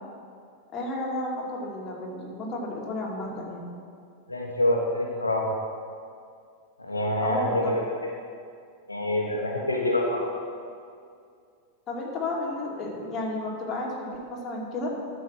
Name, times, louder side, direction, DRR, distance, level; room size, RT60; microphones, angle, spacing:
voice 1, 0.7-3.6 7.2-7.6 11.9-14.9, left 2 dB, 30° left, -3 dB, 2.4 m, -32 dB
voice 2, 4.3-5.5 6.8-7.8 8.9-10.2, left 1 dB, 85° left, -1 dB, 1.3 m, -26 dB
12.0 x 5.2 x 6.2 m, 2.3 s
figure-of-eight pair, 90°, 0 cm